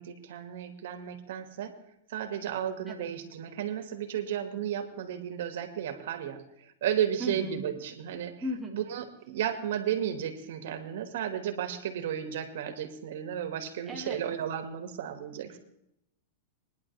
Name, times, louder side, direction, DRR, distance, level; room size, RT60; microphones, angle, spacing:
voice 1, 0.0-1.7 2.1-8.3 8.7-15.6, right 9 dB, 70° right, 7 dB, 2.3 m, -33 dB
voice 2, 7.2-7.6 8.4-8.8 13.9-14.2 15.5-15.6, equal, 5° right, -3 dB, 2.9 m, -36 dB
21.5 x 11.0 x 3.5 m, 0.79 s
supercardioid pair, 150°, 0 cm